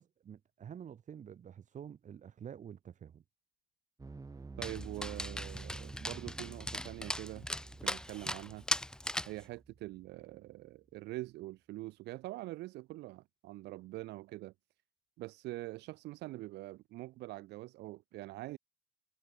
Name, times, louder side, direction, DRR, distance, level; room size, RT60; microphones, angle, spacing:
voice 1, 0.0-3.2, right 8 dB, 45° right, 5.6 m, -49 dB
sound 1, 4.0-10.4, right 3 dB, 20° right, 6.3 m, -50 dB
Dog, 4.6-9.4, left 1 dB, 5° left, 1.4 m, -39 dB
voice 2, 4.6-7.5 7.8-8.6 9.2-14.5 15.2-18.6, right 18 dB, 80° right, 1.5 m, -44 dB
cardioid pair, 110°, 17 cm